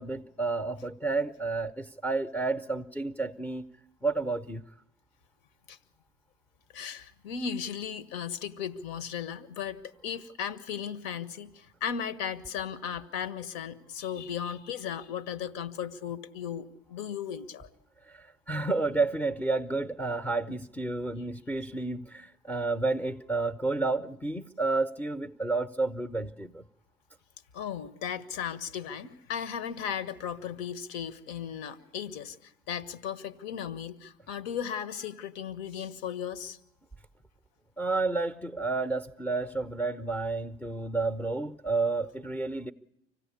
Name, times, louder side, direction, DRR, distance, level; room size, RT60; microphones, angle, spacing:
voice 1, 0.0-3.7 4.0-4.6 18.0-26.6 37.8-42.7, right 3 dB, 5° left, 0.8 m, -30 dB
voice 2, 6.7-17.7 27.5-36.6, left 8 dB, 60° left, 1.5 m, -36 dB
25.5 x 16.5 x 8.5 m
hypercardioid pair, 70°, 39 cm